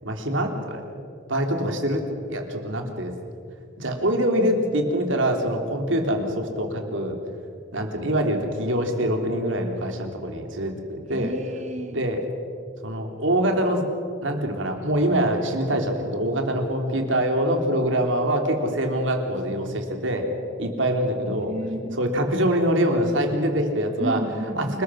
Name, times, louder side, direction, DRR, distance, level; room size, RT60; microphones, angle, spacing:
voice 1, 0.0-0.8 1.3-3.1 3.8-7.2 7.7-11.3 11.9-12.2 12.8-13.8 14.2-20.3 20.6-21.5 21.9-24.2 24.6-24.8, right 1 dB, 75° right, 3 dB, 3.3 m, -24 dB
voice 2, 11.1-12.0 19.5-19.7 21.2-22.0 24.0-24.8, right 1 dB, 35° right, 6 dB, 1.0 m, -32 dB
28.5 x 20.5 x 6.4 m, 2.4 s
head